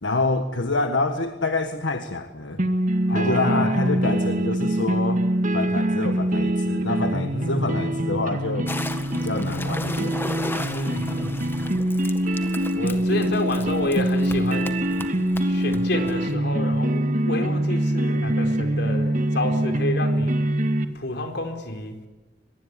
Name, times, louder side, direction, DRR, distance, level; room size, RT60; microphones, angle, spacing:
voice 1, 0.0-2.6 3.1-5.2 5.5-8.7 9.1-10.2, left 2 dB, 90° left, 6 dB, 1.6 m, -26 dB
sound 1, 2.6-20.9, right 1 dB, 45° right, 2.0 m, -24 dB
voice 2, 3.1-3.9 7.3-7.7 10.7-11.7 12.4-12.5 12.7-14.8 15.5-20.5 20.9-22.1, left 2 dB, 65° left, 5 dB, 4.3 m, -30 dB
sound 2, 8.7-16.3, left 2 dB, 15° left, 1.7 m, -36 dB
24.0 x 22.0 x 9.8 m, 1.1 s
head